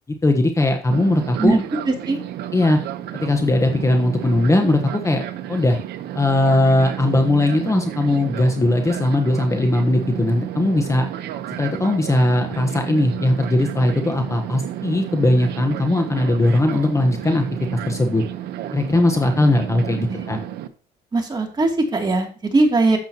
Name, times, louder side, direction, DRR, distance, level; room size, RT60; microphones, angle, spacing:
voice 1, 0.2-1.6 2.5-2.8 3.1-5.2 5.5-5.8 6.1-11.1 11.6-17.5 17.9-18.2 18.7-20.4, left 1 dB, 15° left, 5 dB, 1.1 m, -19 dB
Fixed-wing aircraft airplane, 0.9-20.7, right 12 dB, 75° right, 1.0 m, -31 dB
voice 2, 1.9-2.2 19.9-20.2 21.1-23.0, right 2 dB, 25° right, 1 dB, 2.7 m, -20 dB
12.0 x 7.8 x 2.9 m, 0.40 s
cardioid pair, 110°, 17 cm